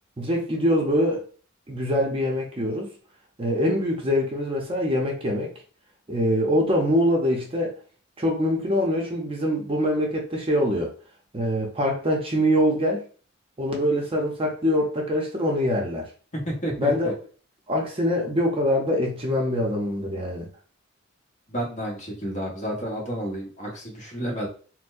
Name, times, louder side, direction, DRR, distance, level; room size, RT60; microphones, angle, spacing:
voice 1, 0.2-1.2 1.7-2.9 3.4-5.5 6.1-7.7 8.2-10.9 11.3-13.0 13.6-16.0 16.8-17.1 17.7-20.5, equal, 25° right, 0 dB, 0.7 m, -24 dB
voice 2, 16.4-17.1 21.5-24.5, equal, 35° left, -2 dB, 1.1 m, -31 dB
4.3 x 2.1 x 2.5 m, 0.40 s
head